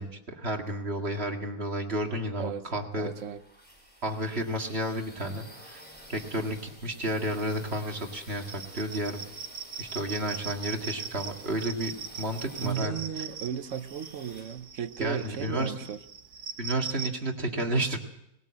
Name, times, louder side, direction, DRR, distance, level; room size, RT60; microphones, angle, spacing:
voice 1, 0.0-3.1 4.0-5.8 6.1-9.2 9.8-11.9 12.2-13.0 15.0-15.7 16.6-18.0, right 1 dB, 40° right, 3 dB, 2.2 m, -31 dB
voice 2, 2.9-3.4 12.6-16.0, right 8 dB, 55° right, 11 dB, 1.2 m, -35 dB
sound 1, 3.0-15.4, equal, 5° left, 5.8 m, -51 dB
sound 2, 8.4-17.1, right 7 dB, 90° right, 1.8 m, -41 dB
20.0 x 18.0 x 7.5 m, 0.80 s
omnidirectional pair, 1.6 m